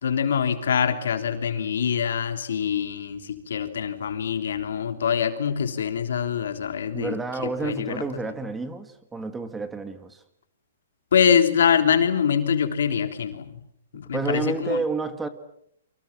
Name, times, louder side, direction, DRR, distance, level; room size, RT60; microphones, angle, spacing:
voice 1, 0.0-7.1 7.4-7.9 11.1-13.5 13.9-14.8, left 7 dB, 75° left, 3.6 m, -24 dB
voice 2, 6.9-10.2 14.1-15.3, right 3 dB, 10° right, 1.9 m, -30 dB
29.0 x 25.0 x 7.5 m
hypercardioid pair, 150°, 0 cm